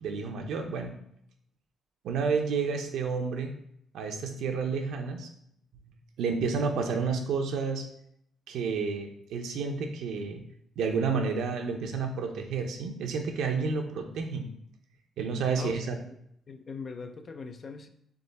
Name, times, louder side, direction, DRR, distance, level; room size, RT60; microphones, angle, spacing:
voice 1, 0.0-0.9 2.0-3.5 3.9-5.3 5.7-5.9 6.2-7.8 8.5-10.4 10.8-14.5 15.2-16.0, right 5 dB, 80° right, 4 dB, 0.7 m, -30 dB
voice 2, 16.5-17.9, left 4 dB, 45° left, 8 dB, 0.5 m, -40 dB
3.6 x 3.6 x 4.1 m, 0.71 s
cardioid pair, 90°, 0 cm